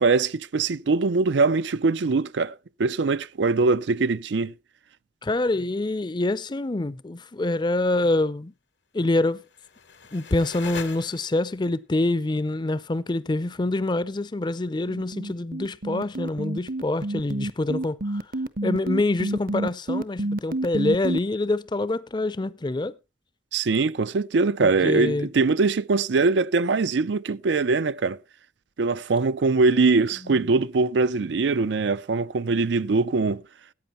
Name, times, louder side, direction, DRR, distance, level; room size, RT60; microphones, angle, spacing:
voice 1, 0.0-2.5 2.8-4.5 23.5-28.2 28.8-33.4, right 4 dB, 75° right, 0.5 m, -22 dB
voice 2, 5.2-8.5 8.9-9.4 10.1-18.0 18.6-22.9 24.6-25.3 30.2-30.3, left 2 dB, 25° left, 0.5 m, -26 dB
sound 1, 9.3-11.6, left 6 dB, 75° left, 1.1 m, -41 dB
sound 2, 14.9-21.2, right 1 dB, 55° right, 0.8 m, -28 dB
14.5 x 8.8 x 4.3 m
head